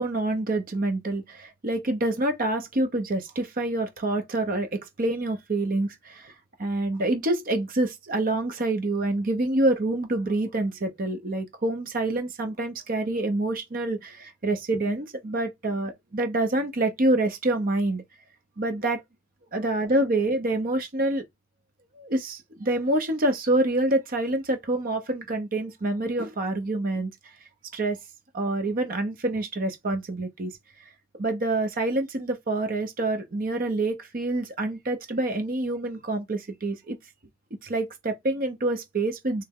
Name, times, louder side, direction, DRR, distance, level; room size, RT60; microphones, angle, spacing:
voice 1, 0.0-6.3 6.6-18.0 18.6-19.0 19.5-21.2 21.9-27.3 27.7-28.0 28.3-30.5 31.2-37.0 37.6-39.4, right 2 dB, 45° right, 0.7 m, -27 dB
3.4 x 3.2 x 3.5 m
head